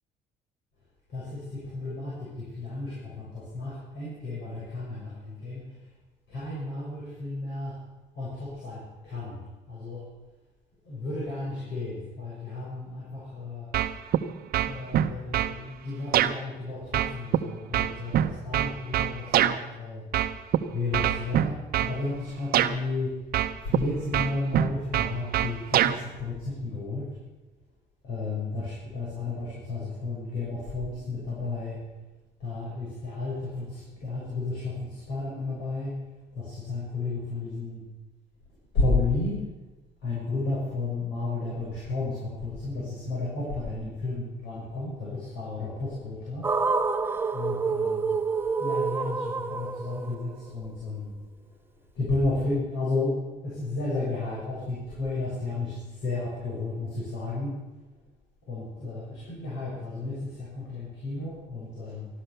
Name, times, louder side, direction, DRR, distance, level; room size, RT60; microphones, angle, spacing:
voice 1, 1.1-5.9 6.3-7.8 8.1-9.4 9.7-10.1 10.8-13.7 14.6-20.1 20.7-23.2 23.6-27.1 28.0-31.9 32.4-36.0 36.3-37.8 38.7-39.5 40.0-46.5 47.3-48.2 48.6-51.2 52.0-57.5 58.4-62.1, left 3 dB, 80° left, -6 dB, 6.8 m, -32 dB
sound 1, 13.7-14.2 14.5-15.5 16.1-16.3 16.9-19.6 20.1-20.6 20.9-21.9 22.5-22.7 23.3-23.8 24.1-26.0, right 11 dB, 65° right, 0.9 m, -24 dB
sound 2, 46.4-50.7, right 4 dB, 15° right, 0.9 m, -28 dB
14.5 x 12.5 x 6.9 m, 1.1 s
cardioid pair, 110°, 17 cm